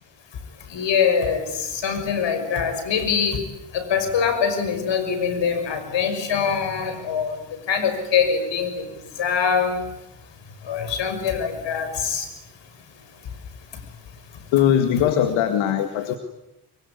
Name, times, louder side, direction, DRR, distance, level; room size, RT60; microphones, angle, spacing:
voice 1, 0.7-3.4 3.7-7.4 7.7-8.8 9.2-9.8 10.7-12.3, left 6 dB, 70° left, 10 dB, 6.1 m, -23 dB
voice 2, 14.5-16.1, left 10 dB, 90° left, 7 dB, 2.1 m, -20 dB
24.5 x 24.0 x 9.8 m, 0.89 s
supercardioid pair, 60°, 45 cm